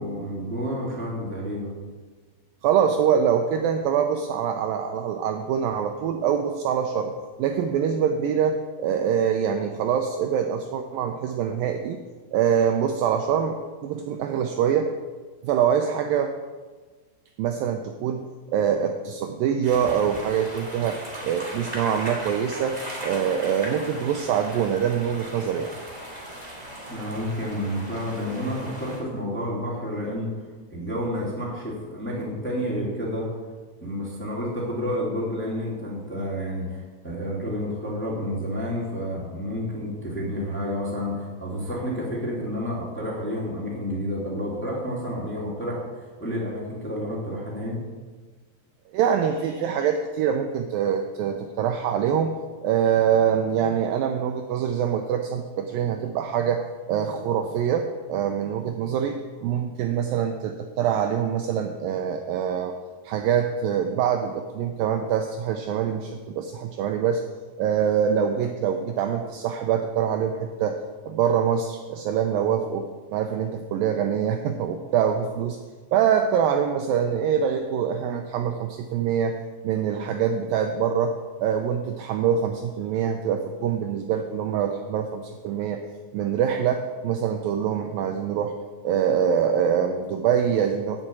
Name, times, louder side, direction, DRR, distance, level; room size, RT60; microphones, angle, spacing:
voice 1, 0.0-1.7 26.9-30.4 30.7-33.3 33.8-45.8 46.2-47.8, equal, 5° left, -5 dB, 1.7 m, -30 dB
voice 2, 2.6-7.1 7.4-12.0 12.3-14.9 15.4-16.3 17.4-18.2 18.5-25.7 48.9-52.3 52.6-56.6 56.9-62.7 63.0-67.2 67.6-70.8 71.1-75.6 75.9-79.4 79.6-85.8 86.1-88.5 88.8-91.0, right 8 dB, 80° right, 5 dB, 2.1 m, -24 dB
sound 1, 19.6-29.0, right 1 dB, 15° right, 1.6 m, -38 dB
7.9 x 7.3 x 8.5 m, 1.4 s
omnidirectional pair, 4.7 m